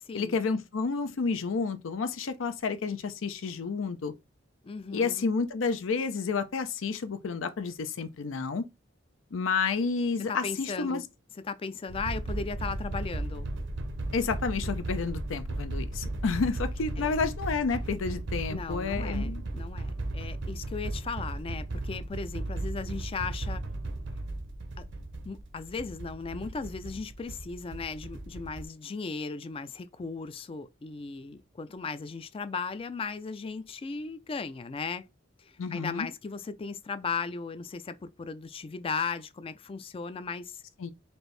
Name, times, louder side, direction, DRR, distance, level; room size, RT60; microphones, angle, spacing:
voice 1, 0.1-4.1 4.9-8.7 9.3-11.0 14.1-19.4 35.6-36.1 40.8-40.9, left 4 dB, 80° left, 0.5 m, -30 dB
voice 2, 4.6-5.3 10.3-11.0 11.4-13.5 17.0-17.1 18.5-23.6 24.8-24.9 25.2-35.1 35.4-40.6, left 4 dB, 30° left, 0.3 m, -37 dB
sound 1, 11.9-28.7, right 2 dB, 65° right, 0.7 m, -35 dB
4.3 x 2.6 x 3.2 m
head